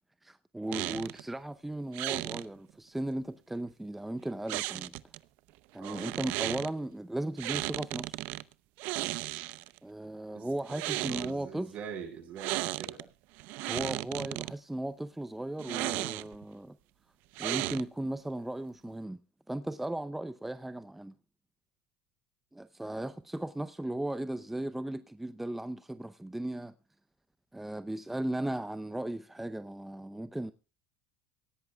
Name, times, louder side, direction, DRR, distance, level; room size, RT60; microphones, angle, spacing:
voice 1, 0.2-4.9 5.7-8.2 9.8-11.7 13.6-16.8 17.4-19.2 19.5-21.1 22.5-26.7 27.5-30.5, right 1 dB, 5° right, 0.6 m, -36 dB
sound 1, 0.7-1.2 1.9-2.4 4.5-5.2 5.8-6.7 7.4-8.4 8.8-9.8 10.6-11.3 12.4-13.0 13.4-14.5 15.6-16.4 17.3-18.1, right 19 dB, 70° right, 0.6 m, -35 dB
voice 2, 10.3-10.8 11.1-13.0, right 7 dB, 55° right, 7.6 m, -43 dB
24.0 x 16.5 x 2.3 m
supercardioid pair, 95°, 3 cm